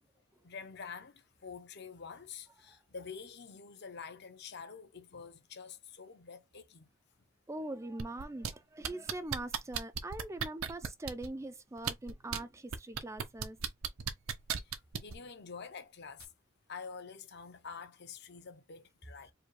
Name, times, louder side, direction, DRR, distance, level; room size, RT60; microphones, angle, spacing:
voice 1, 0.4-6.9 14.6-16.3 16.7-19.3, left 5 dB, 50° left, 0.7 m, -47 dB
voice 2, 7.5-13.6, right 2 dB, 15° right, 0.3 m, -42 dB
sound 1, 8.0-8.5 8.8-11.3 11.8-12.4 12.7-15.2 16.2-16.3, right 7 dB, 75° right, 0.7 m, -35 dB
4.8 x 2.2 x 3.2 m
head